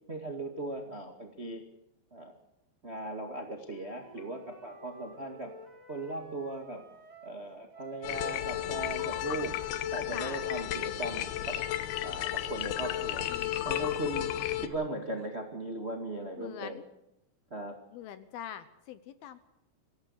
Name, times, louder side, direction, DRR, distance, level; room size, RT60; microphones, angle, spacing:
voice 1, 0.1-1.6 2.1-2.3 2.8-5.5 5.9-6.8 7.2-9.5 9.9-11.6 11.8-13.3 13.6-14.3 14.6-16.8 17.5-17.8, right 2 dB, 45° right, 3 dB, 0.8 m, -38 dB
Wind instrument woodwind instrument, 3.6-7.4 7.7-11.7, right 2 dB, 10° right, 2.8 m, -53 dB
sound 1, 8.0-14.7, left 12 dB, 90° left, 3.5 m, -33 dB
voice 2, 10.1-10.5 13.3-13.7 16.4-16.8 17.9-19.4, left 10 dB, 75° left, 12 dB, 2.5 m, -44 dB
24.5 x 16.5 x 6.5 m, 0.87 s
omnidirectional pair, 5.1 m